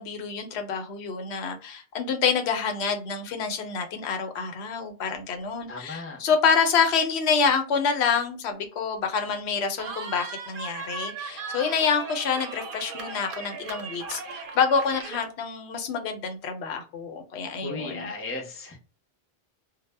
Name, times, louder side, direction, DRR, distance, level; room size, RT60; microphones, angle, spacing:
voice 1, 0.0-18.1, left 6 dB, 80° left, 5 dB, 0.8 m, -27 dB
voice 2, 5.7-6.2 17.6-18.8, left 3 dB, 20° left, 0 dB, 0.4 m, -35 dB
Cheering, 9.8-15.3, right 5 dB, 65° right, 0.7 m, -37 dB
2.0 x 2.0 x 3.2 m, 0.36 s
omnidirectional pair, 1.1 m